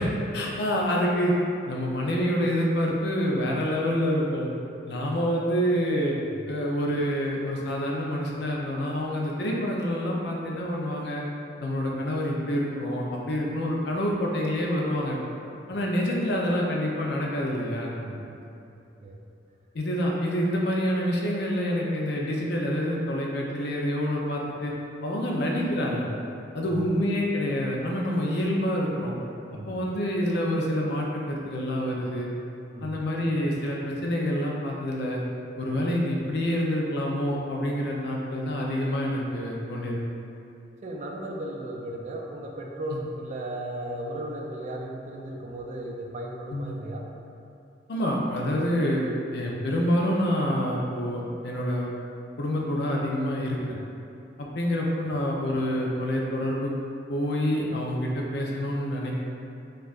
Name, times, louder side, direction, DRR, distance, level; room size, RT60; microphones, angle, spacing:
voice 1, 0.0-1.3 1.7-4.5 4.9-6.2 6.5-11.3 11.6-15.2 15.7-17.9 19.7-24.7 25.0-26.1 26.5-29.1 29.7-32.3 32.8-35.2 35.6-40.0 46.5-46.7 47.9-49.0 49.3-51.9 52.4-53.8 54.4-56.7 57.1-59.2, equal, 65° left, -2 dB, 0.5 m, -27 dB
voice 2, 18.0-18.4 19.0-19.2 26.6-26.8 29.5-29.9 32.7-33.0 40.8-47.0 55.0-55.1, right 1 dB, 40° right, -1 dB, 0.3 m, -36 dB
4.4 x 2.4 x 2.4 m, 2.7 s
head